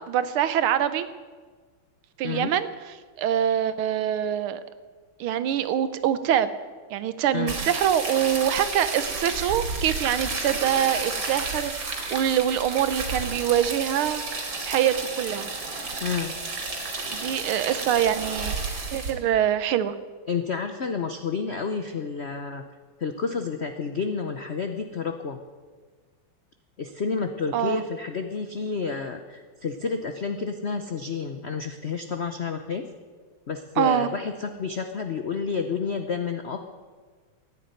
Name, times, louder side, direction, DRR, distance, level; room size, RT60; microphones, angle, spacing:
voice 1, 0.1-1.1 2.2-2.7 3.2-4.6 5.2-6.5 6.9-15.5 17.1-18.5 18.9-19.9 27.5-27.8 33.8-34.1, right 10 dB, 80° right, 12 dB, 1.7 m, -24 dB
sound 1, 7.5-19.1, right 3 dB, 65° right, 3.2 m, -32 dB
voice 2, 16.0-16.3 20.3-22.6 23.0-25.4 26.8-32.8 33.5-36.7, left 5 dB, 70° left, 7 dB, 0.6 m, -30 dB
14.5 x 9.8 x 9.4 m, 1.5 s
omnidirectional pair, 2.3 m